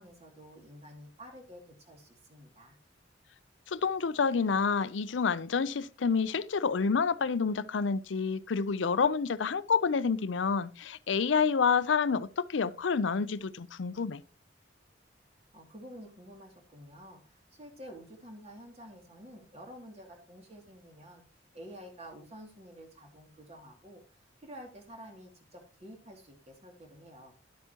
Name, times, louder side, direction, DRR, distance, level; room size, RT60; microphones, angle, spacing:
voice 1, 0.0-2.8 15.5-21.2 21.5-24.0 24.4-27.3, equal, 35° right, 2.5 m, -50 dB
voice 2, 3.7-14.2, left 5 dB, 90° left, 0.5 m, -28 dB
11.5 x 8.1 x 2.9 m
head